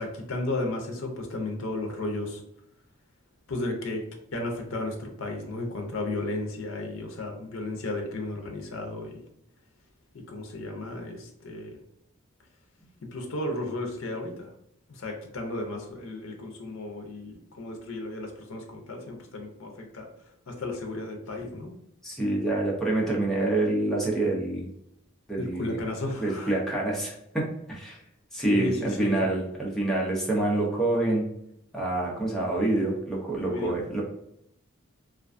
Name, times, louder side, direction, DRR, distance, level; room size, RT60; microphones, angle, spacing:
voice 1, 0.0-2.4 3.5-4.0 4.3-9.2 10.1-11.8 13.0-14.5 14.9-20.1 20.5-21.7 25.4-26.6 28.5-29.2 33.4-34.0, left 2 dB, 70° left, 2 dB, 0.5 m, -34 dB
voice 2, 22.0-24.7 25.3-25.8 26.2-27.4 27.7-28.0 28.3-31.3 31.7-34.0, right 2 dB, ahead, -4 dB, 0.6 m, -27 dB
2.4 x 2.2 x 2.4 m, 0.76 s
head